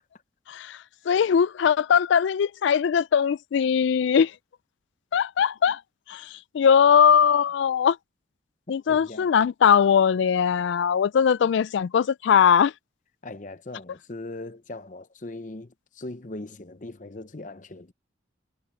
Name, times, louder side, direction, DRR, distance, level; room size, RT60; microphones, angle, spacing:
voice 1, 1.1-4.3 5.1-5.8 6.1-6.2 6.5-8.0 8.7-12.7, left 7 dB, 65° left, 0.3 m, -20 dB
voice 2, 8.7-9.3 11.4-11.5 13.2-17.9, left 2 dB, 40° left, 0.8 m, -40 dB
head